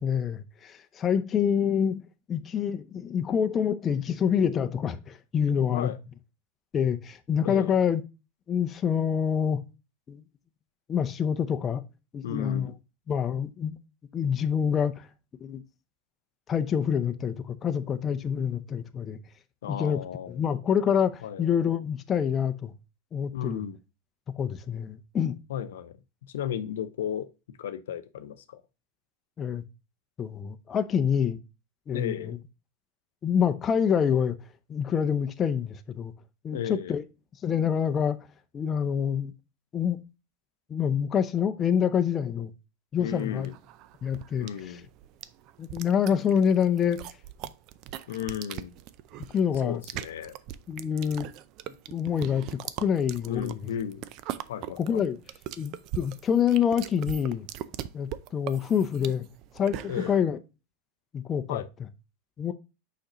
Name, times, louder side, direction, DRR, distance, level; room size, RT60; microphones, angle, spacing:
voice 1, 0.0-5.9 6.7-8.0 8.5-9.6 10.1-10.2 10.9-11.8 12.1-12.7 13.1-13.8 14.1-15.1 15.4-15.6 16.5-19.2 19.7-20.0 20.3-22.7 23.1-23.6 24.4-25.4 29.4-29.6 30.2-31.4 31.9-32.4 33.2-34.4 34.7-36.1 36.4-37.0 37.4-38.2 38.5-39.3 39.7-40.0 40.7-42.5 42.9-43.5 44.0-44.5 45.6-47.0 49.3-49.8 50.7-51.3 51.9-53.6 54.8-55.2 55.6-57.5 57.9-59.3 59.5-60.4 61.1-61.6 62.4-62.5, left 8 dB, 25° left, 0.6 m, -26 dB
voice 2, 7.4-7.7 12.2-12.8 19.6-20.4 21.2-21.5 23.3-23.8 25.5-26.0 26.2-27.3 27.6-28.6 31.9-32.3 36.5-37.0 43.0-43.5 44.4-44.9 48.1-48.7 49.6-50.4 53.3-54.0 54.5-55.0 59.9-60.1 61.5-61.7, left 9 dB, 85° left, 0.7 m, -34 dB
sound 1, 43.2-60.2, right 12 dB, 50° right, 0.5 m, -40 dB
6.4 x 5.2 x 3.0 m
supercardioid pair, 125°, 0 cm